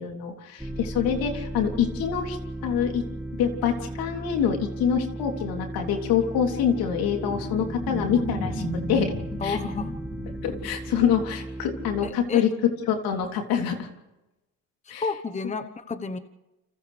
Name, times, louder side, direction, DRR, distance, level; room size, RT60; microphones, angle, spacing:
voice 1, 0.0-2.4 2.6-3.0 3.4-9.1 9.4-9.6 10.4-12.5 12.9-13.9 14.9-15.0, left 8 dB, 80° left, 2 dB, 3.4 m, -25 dB
sound 1, 0.6-12.1, right 1 dB, 5° right, 2.0 m, -36 dB
sound 2, 6.2-11.3, equal, 35° left, 4.8 m, -35 dB
voice 2, 9.4-9.9 12.0-12.4 15.0-16.2, left 4 dB, 20° left, 10 dB, 1.2 m, -31 dB
29.5 x 27.0 x 3.4 m, 1.0 s
cardioid pair, 110°, 35 cm